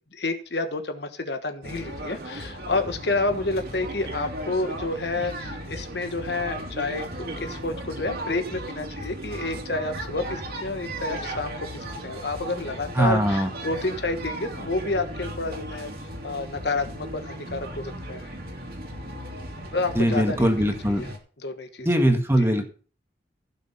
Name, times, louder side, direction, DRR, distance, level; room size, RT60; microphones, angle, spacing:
voice 1, 0.1-11.7 12.0-15.9 16.2-18.3 19.7-20.5 20.9-21.1 21.4-21.9 22.4-22.5, left 2 dB, 65° left, 8 dB, 1.3 m, -29 dB
sound 1, 1.6-21.2, right 1 dB, 55° right, 2.6 m, -36 dB
voice 2, 13.0-13.5 20.0-21.1 21.8-22.6, equal, 15° right, 4 dB, 1.7 m, -21 dB
16.0 x 6.7 x 4.2 m, 0.39 s
head